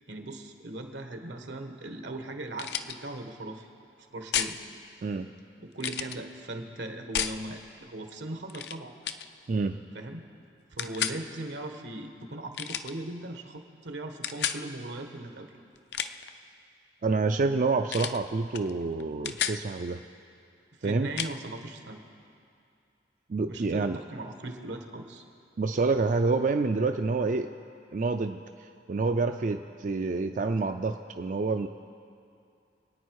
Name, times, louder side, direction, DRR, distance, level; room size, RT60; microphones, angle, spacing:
voice 1, 0.1-3.7 4.1-4.6 5.6-8.9 9.9-10.3 10.7-15.5 20.8-22.0 23.5-25.2, right 2 dB, 85° right, 5 dB, 1.4 m, -39 dB
sound 1, 2.5-3.0 4.3-4.6 5.8-6.2 7.1-7.4 8.5-8.8 9.0-9.3 10.8-11.2 12.5-12.9 14.2-14.6 15.8-16.3 17.9-18.2 18.5-18.7 19.0-19.6 21.2-21.3, left 9 dB, 65° left, 0.5 m, -31 dB
voice 2, 5.0-5.3 9.5-9.9 17.0-20.0 20.8-21.1 23.3-24.0 25.6-27.5 27.9-31.7, right 3 dB, 45° right, 7 dB, 0.4 m, -28 dB
26.5 x 9.3 x 4.7 m, 2.5 s
head